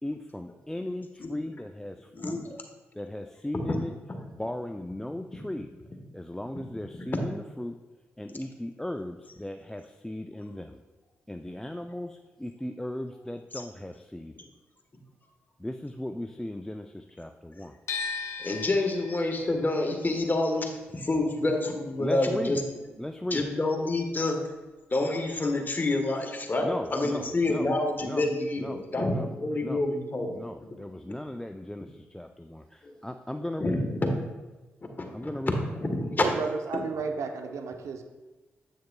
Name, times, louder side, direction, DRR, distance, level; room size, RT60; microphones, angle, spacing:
voice 1, 0.0-2.4 2.9-3.9 4.4-5.7 6.1-7.7 8.2-10.8 11.3-14.3 15.6-17.8 22.0-22.6 23.0-23.5 26.6-27.7 28.0-28.3 28.6-28.8 29.1-29.3 29.6-29.8 30.3-33.8 35.1-35.6, left 1 dB, 10° left, 5 dB, 0.4 m, -36 dB
voice 2, 2.1-2.6 3.6-3.7 18.4-22.6 23.3-24.4 24.9-30.7 32.8-32.9 33.6-34.1 35.0-35.3 35.8-36.2 36.7-36.8, left 2 dB, 40° left, 3 dB, 1.2 m, -28 dB
sound 1, 17.9-23.9 24.2-25.5, left 5 dB, 75° left, 0.6 m, -40 dB
voice 3, 36.2-38.0, right 5 dB, 75° right, 6 dB, 0.6 m, -32 dB
8.2 x 6.4 x 2.2 m, 1.2 s
supercardioid pair, 45°, 5 cm